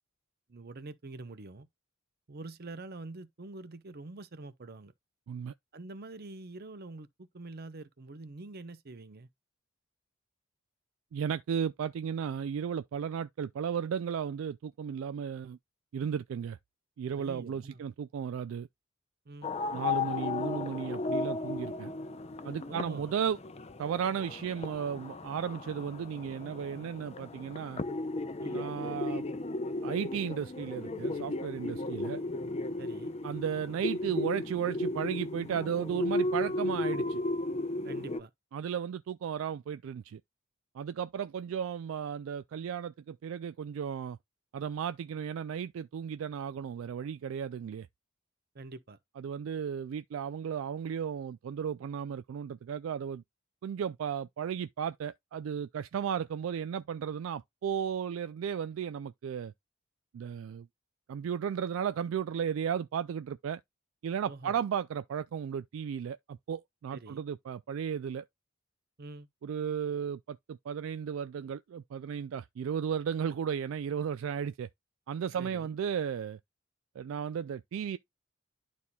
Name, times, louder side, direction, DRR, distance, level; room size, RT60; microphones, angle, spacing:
voice 1, 0.5-1.7 2.3-4.9 5.7-7.1 7.3-9.3 17.2-17.8 19.3-19.5 22.7-23.1 28.4-28.6 32.8-33.1 37.8-38.3 48.5-49.0 64.3-64.6 66.9-67.2 69.0-69.3 75.4-75.7, right 2 dB, 50° right, 0.7 m, -45 dB
voice 2, 11.1-15.6 15.9-16.6 17.0-18.7 19.7-21.9 22.4-23.4 23.8-27.8 28.5-29.2 29.8-32.2 33.2-37.2 38.5-40.2 40.7-44.2 44.5-47.9 49.2-53.2 53.6-59.5 60.1-60.7 61.1-63.6 64.0-68.2 69.4-74.7 75.1-76.4 77.0-78.0, right 8 dB, 70° right, 0.3 m, -34 dB
sound 1, 19.4-38.2, left 2 dB, 30° left, 0.6 m, -35 dB
11.5 x 4.2 x 2.3 m
head